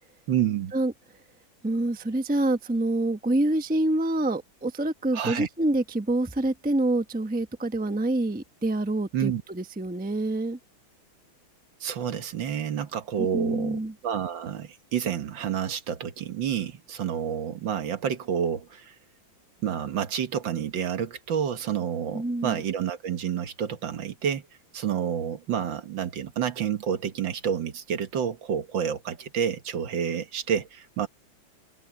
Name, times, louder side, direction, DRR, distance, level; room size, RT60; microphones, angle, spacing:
voice 1, 0.3-0.7 5.1-5.5 9.1-9.4 11.8-18.9 19.6-24.4 24.7-31.1, right 8 dB, 70° right, 2.0 m, -29 dB
voice 2, 1.6-10.6 13.2-13.9 22.1-22.6, right 2 dB, 5° right, 0.7 m, -26 dB
omnidirectional pair, 2.2 m